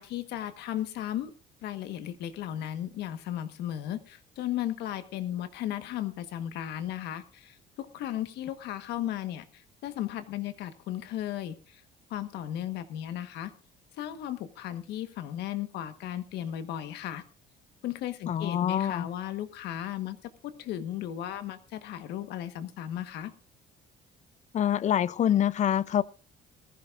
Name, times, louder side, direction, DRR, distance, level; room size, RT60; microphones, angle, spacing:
voice 1, 0.0-1.3 1.6-11.8 12.1-13.5 13.9-17.2 17.8-23.3, left 12 dB, 80° left, 1.4 m, -35 dB
voice 2, 18.3-19.1 24.5-26.0, left 10 dB, 45° left, 0.6 m, -25 dB
20.0 x 14.5 x 2.5 m
cardioid pair, 110°, 17 cm